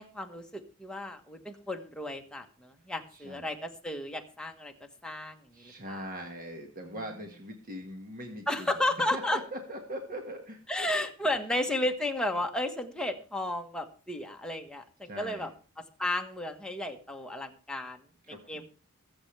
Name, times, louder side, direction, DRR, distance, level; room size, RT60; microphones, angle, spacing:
voice 1, 0.0-4.7 5.0-5.4 5.9-6.0 8.5-9.4 10.7-15.5 16.0-18.0 18.5-18.6, left 1 dB, 5° left, 3 dB, 1.4 m, -33 dB
voice 2, 3.1-3.5 5.5-11.0 15.0-15.5 18.2-18.6, equal, 40° right, 3 dB, 1.8 m, -41 dB
23.0 x 7.9 x 3.4 m, 0.38 s
head